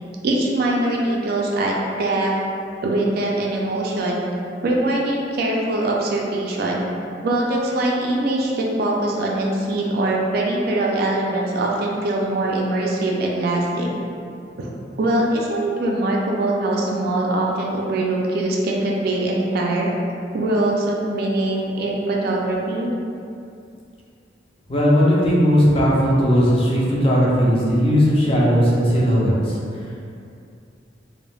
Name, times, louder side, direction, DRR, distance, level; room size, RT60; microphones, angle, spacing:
voice 1, 0.2-2.3 2.8-4.2 4.6-6.8 7.2-14.0 14.6-14.7 15.0-19.9 20.3-22.9, right 1 dB, 55° right, -2 dB, 0.4 m, -22 dB
voice 2, 24.7-29.6, equal, 30° left, -5 dB, 0.5 m, -17 dB
2.3 x 2.0 x 3.2 m, 2.5 s
head